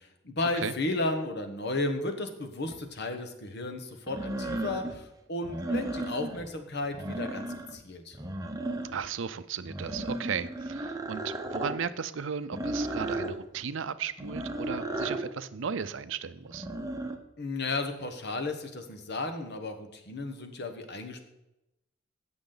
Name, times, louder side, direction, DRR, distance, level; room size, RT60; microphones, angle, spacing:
voice 1, 0.0-8.2 17.4-21.2, left 2 dB, 60° left, 7 dB, 1.3 m, -34 dB
sound 1, 2.7-2.8 4.1-5.0 5.4-6.5 6.8-7.8 8.1-9.1 9.7-11.8 12.5-13.4 14.2-15.3 16.5-17.2, right 1 dB, 20° right, 0.9 m, -34 dB
voice 2, 8.9-16.7, right 6 dB, 70° right, 14 dB, 0.6 m, -35 dB
15.5 x 6.2 x 4.0 m, 0.91 s
head